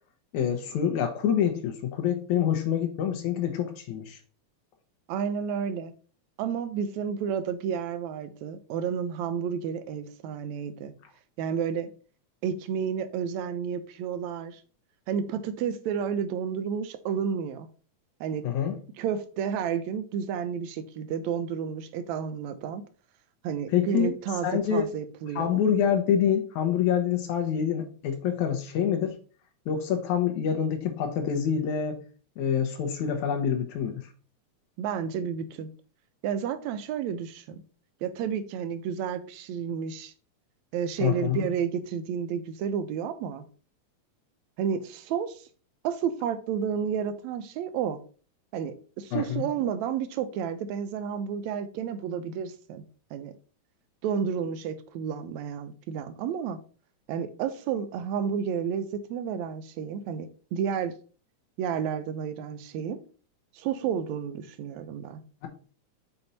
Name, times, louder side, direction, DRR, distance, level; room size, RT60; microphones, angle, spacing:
voice 1, 0.3-4.2 18.4-18.8 23.7-24.2 24.4-24.8 25.4-29.2 29.7-32.0 32.4-34.1 41.0-41.5 49.1-49.5, left 8 dB, 80° left, 2.2 m, -26 dB
voice 2, 5.1-5.9 6.4-10.9 11.4-11.9 12.4-14.6 15.1-17.7 18.2-18.5 19.0-22.8 23.4-25.6 34.8-35.7 36.2-37.6 38.0-40.1 40.7-43.4 44.6-45.4 45.8-48.0 48.5-52.8 53.1-53.3 54.0-56.6 57.1-60.9 61.6-63.0 63.6-65.2, right 7 dB, 80° right, 1.9 m, -31 dB
6.8 x 4.3 x 4.0 m
omnidirectional pair, 3.3 m